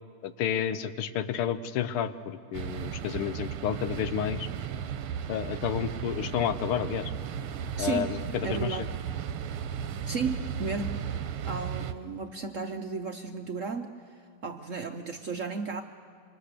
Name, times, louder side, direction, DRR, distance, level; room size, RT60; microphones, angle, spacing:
voice 1, 0.2-4.5 5.3-7.1 7.8-8.9, left 9 dB, 80° left, 12 dB, 1.8 m, -31 dB
sound 1, 2.5-11.9, right 8 dB, 85° right, 1.8 m, -35 dB
voice 2, 7.8-8.1 8.4-8.9 10.1-11.0 11.4-15.8, right 4 dB, 65° right, 5 dB, 0.8 m, -34 dB
26.0 x 25.0 x 6.7 m, 2.2 s
omnidirectional pair, 2.4 m